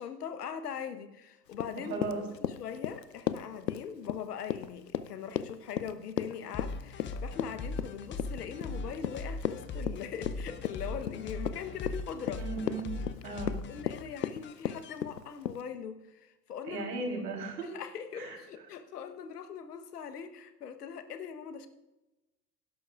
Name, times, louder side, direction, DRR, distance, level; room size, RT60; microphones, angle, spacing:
voice 1, 0.0-2.0 2.3-12.4 13.7-16.8 17.6-21.7, left 7 dB, 70° left, 10 dB, 1.2 m, -41 dB
Run, 1.5-15.6, left 9 dB, 85° left, 0.6 m, -36 dB
voice 2, 1.9-2.2 12.3-12.9 13.2-13.6 16.7-17.7 18.2-18.4, right 3 dB, 70° right, 2 dB, 3.7 m, -36 dB
sound 1, 6.5-14.9, left 3 dB, 25° left, 0.9 m, -40 dB
17.0 x 11.5 x 2.5 m, 1.0 s
figure-of-eight pair, 85°, 49 cm